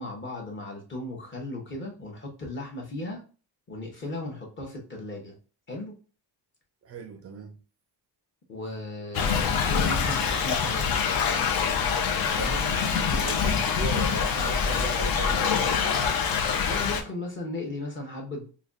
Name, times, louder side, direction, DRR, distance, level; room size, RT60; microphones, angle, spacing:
voice 1, 0.0-3.2 3.7-5.3 5.7-5.9 8.5-10.9 16.6-18.5, left 2 dB, 25° left, 0.8 m, -36 dB
voice 2, 6.8-7.6 12.3-16.3, right 5 dB, 35° right, 0.4 m, -38 dB
Thunder / Rain, 9.1-17.0, left 6 dB, 55° left, 0.6 m, -25 dB
5.0 x 2.2 x 2.4 m
cardioid pair, 160°, 43 cm